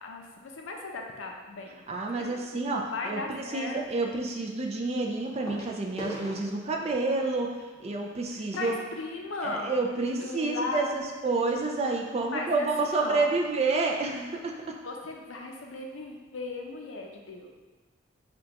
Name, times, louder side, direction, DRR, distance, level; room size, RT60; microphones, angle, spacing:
voice 1, 0.0-1.9 2.3-3.8 8.3-9.8 10.2-11.0 12.3-13.3 14.8-17.5, left 2 dB, 80° left, 1 dB, 0.5 m, -37 dB
sound 1, 1.9-2.2 3.8-3.9 5.5-9.9 10.6-10.7 10.9-11.1 11.7-11.8, equal, 15° left, 0.7 m, -45 dB
voice 2, 1.9-3.2 3.5-8.8 9.4-14.8, right 3 dB, 35° right, 1 dB, 0.4 m, -29 dB
5.0 x 2.3 x 2.8 m, 1.3 s
head